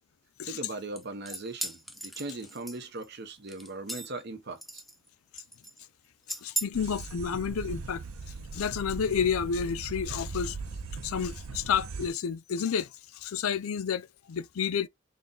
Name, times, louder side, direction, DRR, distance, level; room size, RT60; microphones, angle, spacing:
voice 1, 0.5-4.8, right 2 dB, 50° right, 0.8 m, -39 dB
sound 1, 1.0-3.0 3.5-4.2 4.6-5.1 5.4-5.8 6.3-6.7, right 1 dB, ahead, 0.4 m, -37 dB
voice 2, 6.4-8.0 8.5-10.6 11.0-12.9 13.1-14.9, left 7 dB, 85° left, 0.5 m, -30 dB
sound 2, 6.7-12.1, right 4 dB, 90° right, 0.6 m, -39 dB
4.0 x 2.3 x 3.8 m
head